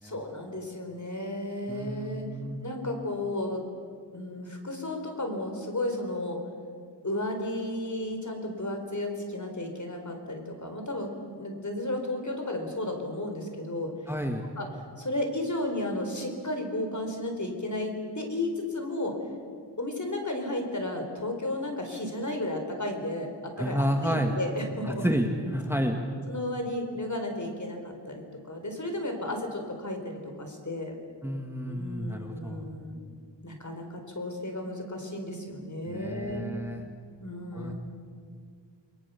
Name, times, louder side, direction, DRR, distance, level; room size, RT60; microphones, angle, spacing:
voice 1, 0.0-2.3 2.6-3.6 4.1-6.4 7.0-11.1 11.4-13.9 14.6-14.7 15.0-19.1 19.8-23.3 23.6-25.1 26.3-31.0 31.7-33.0 33.4-36.4 37.2-37.7, left 1 dB, 40° left, 4 dB, 4.4 m, -33 dB
voice 2, 1.7-2.6 14.1-14.5 23.6-24.3 24.8-26.0 31.2-32.7 35.9-36.8 37.5-37.7, equal, 5° right, 3 dB, 1.9 m, -30 dB
29.0 x 22.0 x 7.1 m, 2.1 s
wide cardioid pair, 75°, 45 cm